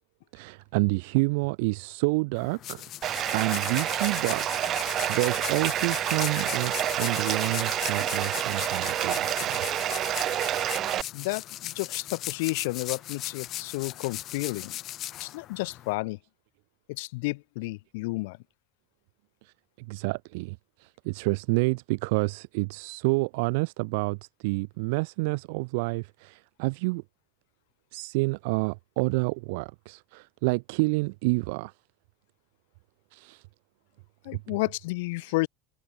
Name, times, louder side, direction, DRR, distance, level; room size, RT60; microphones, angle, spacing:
voice 1, 0.3-2.9 3.3-9.6 19.4-27.0 27.9-31.7 33.1-33.4 34.5-34.6, right 28 dB, 70° right, 2.0 m, -29 dB
sound 1, 2.3-15.9, left 13 dB, 50° left, 7.7 m, -38 dB
Bathtub (filling or washing), 3.0-11.0, right 12 dB, 45° right, 1.5 m, -28 dB
voice 2, 11.1-14.8 15.2-16.2 16.9-18.4 34.2-35.5, left 24 dB, 75° left, 4.2 m, -31 dB
hypercardioid pair, 95°, 0 cm